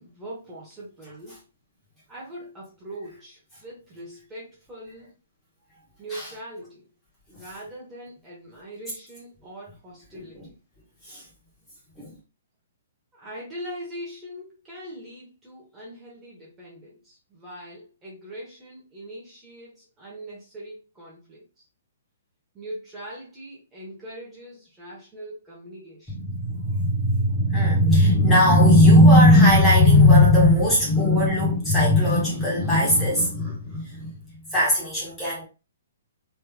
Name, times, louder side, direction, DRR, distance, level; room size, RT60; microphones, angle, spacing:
voice 1, 0.0-1.4 2.1-5.1 6.0-6.9 7.3-10.6 13.1-21.6 22.5-26.1, right 1 dB, 15° right, 1.2 m, -41 dB
voice 2, 26.1-34.1 34.5-35.4, left 1 dB, 10° left, 1.3 m, -18 dB
3.3 x 3.2 x 2.3 m
hypercardioid pair, 160°, 0 cm